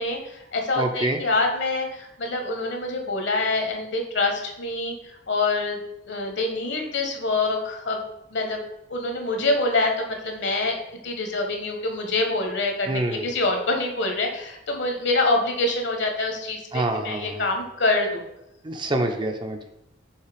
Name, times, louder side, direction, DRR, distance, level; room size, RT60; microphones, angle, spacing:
voice 1, 0.0-5.8 6.1-8.0 8.3-8.6 8.9-10.8 11.0-18.3, left 2 dB, 60° left, 3 dB, 1.1 m, -25 dB
voice 2, 0.8-1.2 12.9-13.3 16.7-17.5 18.6-19.7, right 2 dB, 25° right, 4 dB, 0.5 m, -26 dB
5.6 x 3.8 x 5.0 m, 0.84 s
head